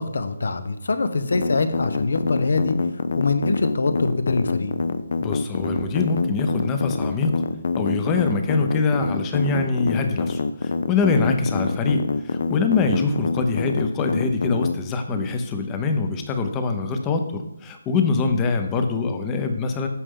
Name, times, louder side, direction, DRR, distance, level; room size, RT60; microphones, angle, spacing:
voice 1, 0.0-2.8 3.1-4.7 11.3-11.5, left 3 dB, 70° left, 10 dB, 0.9 m, -24 dB
sound 1, 1.3-14.7, left 4 dB, 55° left, 0.5 m, -25 dB
voice 2, 5.2-7.4 7.8-19.9, left 4 dB, 15° left, 6 dB, 0.7 m, -24 dB
8.4 x 6.7 x 3.7 m, 0.83 s
hypercardioid pair, 170°, 0 cm